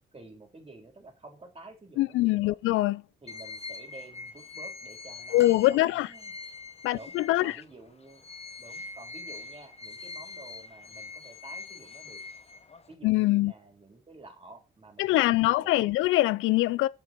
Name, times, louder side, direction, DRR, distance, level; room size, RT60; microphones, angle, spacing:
voice 1, 0.1-2.6 3.2-6.3 6.9-7.1 7.4-8.2 8.6-12.2 12.9-16.0, right 2 dB, 30° right, 3.9 m, -50 dB
voice 2, 2.0-3.0 5.3-6.1 6.8-7.6 13.0-13.5 15.0-16.9, left 17 dB, 90° left, 0.4 m, -23 dB
sound 1, 3.3-7.6 8.1-12.9, left 4 dB, 30° left, 1.1 m, -43 dB
sound 2, 5.4-6.8 9.2-9.4 10.7-10.8, left 7 dB, 60° left, 1.0 m, -44 dB
8.2 x 6.3 x 4.5 m
cardioid pair, 90°, 20 cm